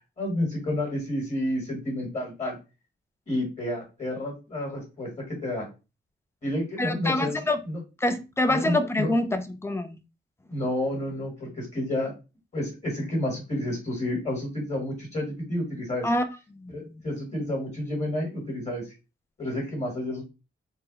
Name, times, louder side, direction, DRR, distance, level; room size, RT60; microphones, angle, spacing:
voice 1, 0.2-2.6 3.3-5.7 6.4-7.4 7.6-7.8 8.5-9.1 10.5-12.1 12.5-16.1 16.7-18.8 19.4-20.2, left 1 dB, 35° left, 1.6 m, -30 dB
voice 2, 6.8-7.6 8.0-10.0 16.0-16.3 16.6-16.7, left 1 dB, 10° left, 0.4 m, -25 dB
3.8 x 2.2 x 3.9 m
wide cardioid pair, 160°, 21 cm